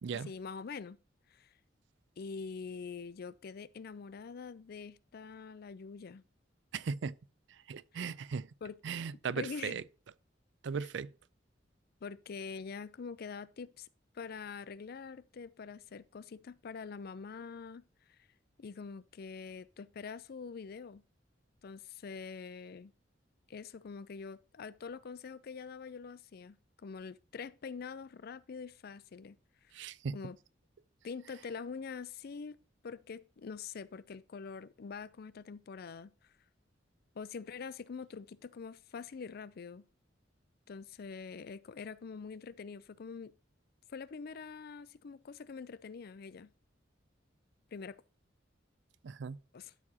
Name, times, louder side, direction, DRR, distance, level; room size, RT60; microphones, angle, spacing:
voice 1, 0.1-1.0 1.3-1.5 2.2-6.2 7.9-8.0 8.6-8.8 9.3-9.8 12.0-13.9 14.1-17.8 18.6-21.0 21.6-22.9 23.5-26.6 26.8-29.4 30.1-30.4 31.0-32.6 32.8-36.3 37.2-39.8 40.7-43.3 43.9-46.5 47.7-48.0 49.5-49.7, left 5 dB, 55° left, 0.4 m, -45 dB
voice 2, 6.7-7.2 7.7-8.5 8.8-9.8 10.6-11.1 29.7-30.2 49.0-49.4, right 5 dB, 70° right, 0.4 m, -37 dB
12.5 x 4.7 x 2.8 m
head